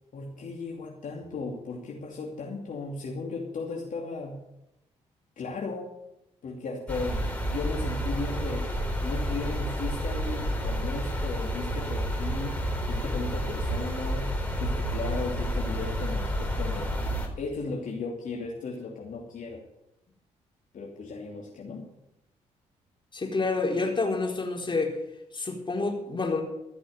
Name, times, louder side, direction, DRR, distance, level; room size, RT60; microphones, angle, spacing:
voice 1, 0.1-4.5 5.4-5.9 6.4-8.7 9.0-16.9 17.4-19.6 20.7-21.9, left 3 dB, 60° left, -2 dB, 2.7 m, -36 dB
sound 1, 6.9-17.3, equal, 10° left, 4.1 m, -30 dB
voice 2, 23.1-25.0 25.3-26.4, left 3 dB, 30° left, 1 dB, 4.1 m, -28 dB
15.5 x 6.2 x 9.3 m, 0.89 s
supercardioid pair, 50°, 15 cm